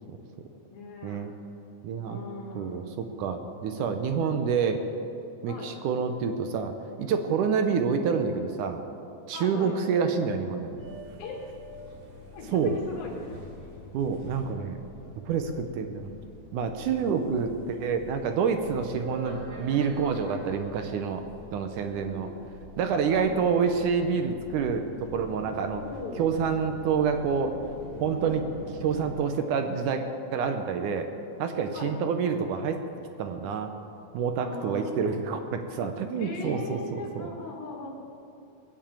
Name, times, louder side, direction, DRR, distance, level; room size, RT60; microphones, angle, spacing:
voice 1, 0.7-1.2 2.0-2.9 5.5-5.8 7.6-7.8 9.3-9.8 11.2-11.4 12.3-13.4 21.8-22.5 23.1-23.4 25.7-26.2 28.2-28.7 31.7-31.9 34.4-35.1 36.2-37.9, left 3 dB, 75° left, -2 dB, 3.4 m, -40 dB
voice 2, 1.8-2.2 2.6-4.8 5.4-8.8 9.3-10.8 12.5-12.8 13.9-14.8 15.3-16.2 16.5-21.2 21.5-22.3 22.8-25.8 26.2-27.6 28.0-28.4 28.8-30.0 30.3-31.1 31.4-32.8 33.2-33.7 34.1-37.3, right 6 dB, 70° right, 6 dB, 2.1 m, -27 dB
sound 1, 10.7-29.1, left 1 dB, 25° right, 3.5 m, -45 dB
19.5 x 7.2 x 8.8 m, 2.6 s
omnidirectional pair, 4.1 m